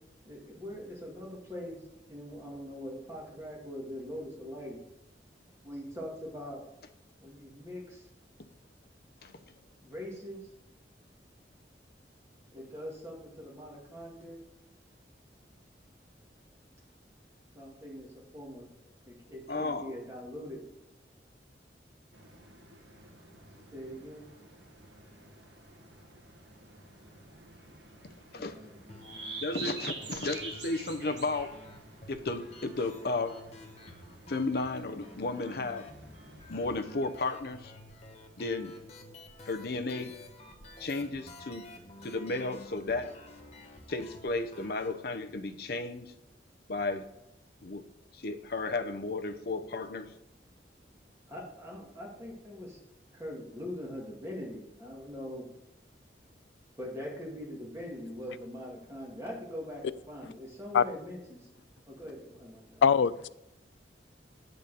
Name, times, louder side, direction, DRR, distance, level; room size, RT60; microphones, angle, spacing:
voice 1, 0.2-1.8 2.1-4.8 5.6-6.6 7.2-8.1 9.8-10.5 12.5-14.4 17.5-18.7 19.0-20.7 23.7-24.3 28.3-29.0 51.3-52.8 53.1-55.5 56.8-61.5 61.9-62.8, equal, 15° right, 2.2 m, -42 dB
voice 2, 19.5-19.9 28.3-28.6 29.4-31.6 32.1-33.4 34.3-35.9 36.5-37.7 38.4-38.8 39.5-40.1 40.8-41.7 42.0-43.1 43.9-46.1 46.7-47.0 47.6-47.8 48.1-50.1, left 3 dB, 60° left, 0.7 m, -33 dB
sound 1, 22.1-36.8, right 3 dB, 90° right, 1.3 m, -47 dB
sound 2, 28.9-44.9, left 2 dB, 40° left, 1.0 m, -51 dB
voice 3, 62.8-63.3, left 7 dB, 85° left, 0.4 m, -23 dB
8.8 x 4.0 x 6.8 m
head